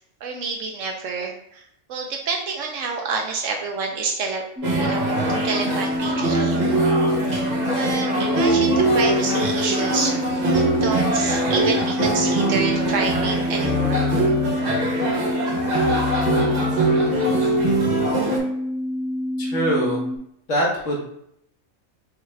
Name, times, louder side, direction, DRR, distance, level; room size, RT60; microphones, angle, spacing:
voice 1, 0.2-4.4 4.8-6.6 7.7-10.1 10.4-14.1, right 4 dB, 70° right, 2 dB, 0.9 m, -28 dB
sound 1, 4.6-20.2, left 1 dB, 5° right, 0.6 m, -27 dB
sound 2, 4.6-18.4, right 1 dB, 40° right, 0.7 m, -22 dB
voice 2, 19.4-20.0 20.5-21.0, right 1 dB, 65° left, -3 dB, 1.5 m, -23 dB
5.3 x 2.4 x 3.2 m, 0.74 s
omnidirectional pair, 1.4 m